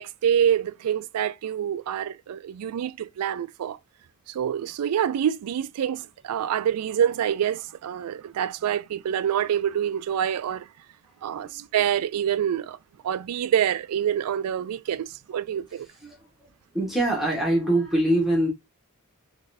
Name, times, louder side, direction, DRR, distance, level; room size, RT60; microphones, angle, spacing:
voice 1, 0.0-3.8 4.3-10.7 11.2-12.8 13.0-15.9, right 9 dB, 90° right, 0.3 m, -26 dB
voice 2, 16.7-18.5, right 1 dB, ahead, 1.2 m, -23 dB
3.9 x 3.0 x 2.6 m
head